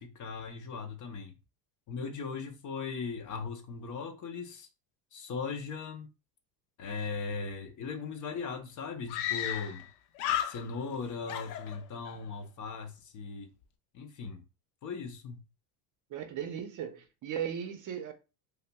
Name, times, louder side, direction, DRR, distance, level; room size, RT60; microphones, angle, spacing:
voice 1, 0.0-1.4 1.9-4.7 5.1-6.1 6.8-9.9 10.5-13.5 13.9-14.4 14.8-15.4, left 5 dB, 40° left, 0.7 m, -38 dB
Screaming, 8.0-8.1 8.3-8.4 9.1-9.9 10.2-11.0 11.3-12.2, left 11 dB, 90° left, 0.6 m, -34 dB
voice 2, 16.1-18.1, right 9 dB, 40° right, 0.6 m, -37 dB
5.2 x 2.0 x 2.2 m
cardioid pair, 130°, 47 cm